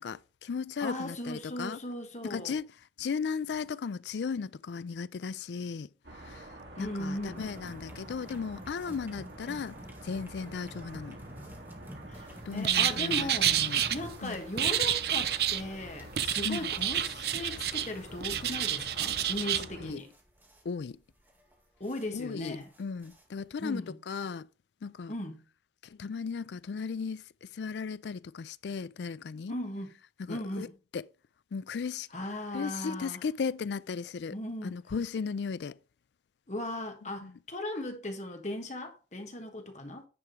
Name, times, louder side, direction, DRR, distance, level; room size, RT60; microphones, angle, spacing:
voice 1, 0.0-1.8 2.3-2.7 3.0-5.9 6.2-6.4 6.8-9.8 10.0-11.2 12.5-13.8 14.2-14.4 16.4-16.7 19.8-20.0 20.7-21.0 22.1-24.5 24.8-25.1 26.0-27.2 27.5-29.5 30.3-30.7 30.9-31.0 31.5-32.1 32.5-34.4 34.6-35.7 37.2-37.3, left 5 dB, 80° left, 0.4 m, -36 dB
voice 2, 0.8-2.6 6.8-7.5 9.0-9.1 12.1-13.6 13.9-20.1 21.8-22.7 23.6-24.0 25.1-25.4 29.5-29.9 30.3-30.7 32.1-33.2 34.3-34.8 36.5-40.0, left 1 dB, 40° left, 1.4 m, -37 dB
sound 1, 6.0-19.9, right 1 dB, 85° right, 1.9 m, -48 dB
sound 2, 7.4-23.7, equal, 10° right, 1.7 m, -50 dB
sound 3, 12.6-13.9 14.6-15.6 16.2-17.9 18.2-19.6, right 11 dB, 65° right, 0.6 m, -29 dB
9.7 x 3.6 x 6.4 m
head